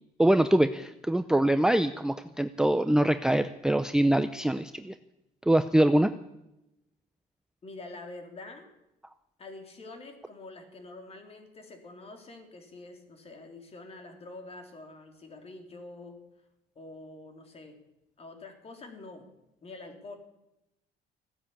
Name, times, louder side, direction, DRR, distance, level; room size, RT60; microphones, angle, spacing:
voice 1, 0.2-4.9 5.5-6.1, right 1 dB, 5° right, 11 dB, 0.6 m, -24 dB
voice 2, 7.6-8.7 9.4-16.2 16.7-17.8 18.2-19.3 19.6-20.2, left 2 dB, 35° left, 5 dB, 3.2 m, -46 dB
15.5 x 9.9 x 8.6 m, 0.89 s
cardioid pair, 110°, 17 cm